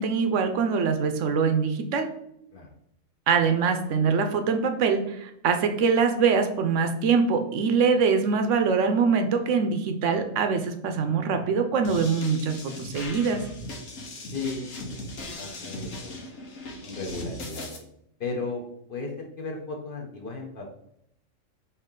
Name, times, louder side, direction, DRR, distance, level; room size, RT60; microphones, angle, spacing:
voice 1, 0.0-2.1 3.3-13.4, right 5 dB, 75° right, 7 dB, 0.9 m, -23 dB
sound 1, 11.8-17.8, left 1 dB, 85° left, 1.2 m, -38 dB
voice 2, 14.3-16.2 16.8-17.7 18.2-18.6 18.9-20.7, left 3 dB, 50° left, 1 dB, 0.9 m, -35 dB
4.6 x 2.8 x 3.7 m, 0.75 s
omnidirectional pair, 1.3 m